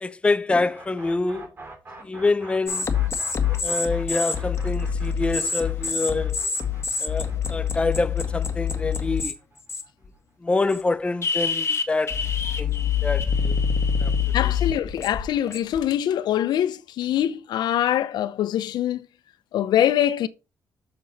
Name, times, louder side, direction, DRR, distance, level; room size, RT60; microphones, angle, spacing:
voice 1, 0.0-1.5 2.0-2.9 3.6-6.4 7.0-9.4 10.4-12.2 12.6-13.6 14.0-14.5, left 3 dB, 15° left, 0.5 m, -26 dB
sound 1, 0.7-10.5, right 2 dB, 30° right, 2.7 m, -45 dB
sound 2, 2.7-9.3 9.7-10.1 10.7-10.8 11.2-15.8, left 6 dB, 40° left, 1.6 m, -25 dB
voice 2, 14.3-19.1 19.5-20.3, left 11 dB, 90° left, 0.6 m, -23 dB
7.0 x 6.8 x 4.1 m
cardioid pair, 115°, 7 cm